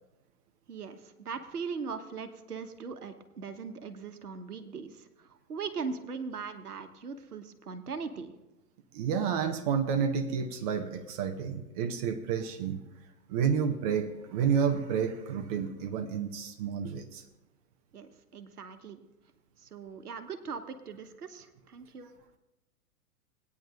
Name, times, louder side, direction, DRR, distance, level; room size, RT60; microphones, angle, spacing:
voice 1, 0.7-8.3 17.9-19.0 19.6-22.1, right 5 dB, 75° right, 8 dB, 1.1 m, -40 dB
voice 2, 8.9-12.8 13.3-17.2, right 7 dB, 25° right, 6 dB, 0.6 m, -30 dB
19.5 x 9.4 x 2.5 m, 0.97 s
figure-of-eight pair, 110°, 46 cm